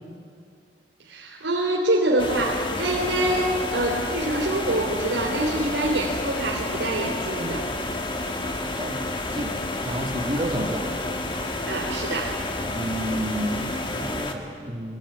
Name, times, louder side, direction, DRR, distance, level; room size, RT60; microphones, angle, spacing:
voice 1, 1.1-7.7 11.7-12.4, right 1 dB, 90° right, -3 dB, 3.6 m, -25 dB
sound 1, 2.2-14.3, left 2 dB, 30° left, 1.9 m, -30 dB
voice 2, 8.8-10.9 12.7-15.0, equal, 30° right, 1 dB, 2.9 m, -30 dB
23.5 x 19.0 x 10.0 m, 2.3 s
head